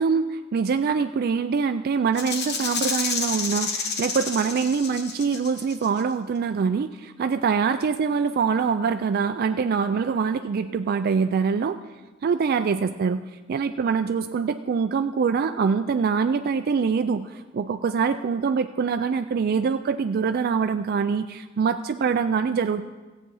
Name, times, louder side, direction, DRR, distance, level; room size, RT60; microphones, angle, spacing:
voice 1, 0.0-11.8 12.2-13.2 13.5-22.8, right 5 dB, 50° right, 9 dB, 0.3 m, -24 dB
Rattle (instrument), 2.2-6.0, left 5 dB, 55° left, 1.2 m, -30 dB
14.5 x 8.4 x 5.5 m, 1.3 s
head